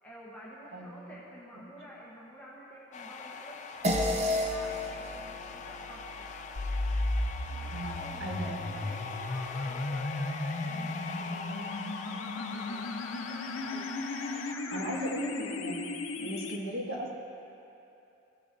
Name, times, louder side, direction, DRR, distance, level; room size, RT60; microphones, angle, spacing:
voice 1, 0.0-6.3 7.5-15.2 16.1-16.4, equal, 10° left, -7 dB, 1.0 m, -51 dB
sound 1, 2.9-14.5, left 5 dB, 35° left, 0.4 m, -42 dB
sound 2, 3.8-8.6, left 1 dB, 35° right, 0.5 m, -34 dB
sound 3, 6.6-16.6, left 2 dB, 85° left, 0.6 m, -35 dB
voice 2, 7.7-8.6 14.7-15.9 16.2-17.1, right 1 dB, 90° right, -2 dB, 1.6 m, -37 dB
16.0 x 6.7 x 2.6 m, 2.8 s
head